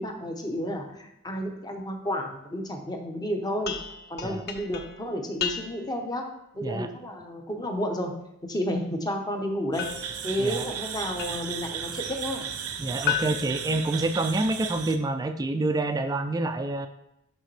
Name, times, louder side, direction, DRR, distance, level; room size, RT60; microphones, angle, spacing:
voice 1, 0.0-3.7 4.1-8.1 8.4-9.9 10.2-12.5, equal, 20° left, 3 dB, 0.8 m, -31 dB
sound 1, 3.6-6.0 9.8-11.7 13.1-14.5, left 9 dB, 50° left, 0.6 m, -35 dB
sound 2, 9.7-15.0, right 8 dB, 80° right, 0.6 m, -35 dB
voice 2, 12.8-16.9, right 2 dB, 15° right, 8 dB, 0.3 m, -27 dB
6.3 x 6.0 x 3.2 m, 0.82 s
head